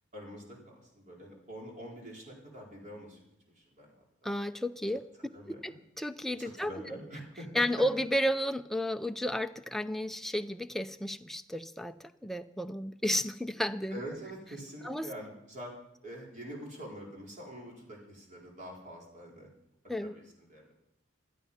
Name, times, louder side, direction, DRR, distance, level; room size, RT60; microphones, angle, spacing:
voice 1, 0.1-3.2 3.5-3.9 4.2-4.3 5.3-5.8 6.4-7.6 13.9-15.7 16.0-19.5 20.0-20.7, equal, 40° right, -2 dB, 4.7 m, -45 dB
voice 2, 4.2-7.0 7.5-14.0 14.8-15.1 19.9-20.1, left 1 dB, ahead, 8 dB, 0.5 m, -33 dB
16.5 x 12.5 x 5.8 m, 0.80 s
head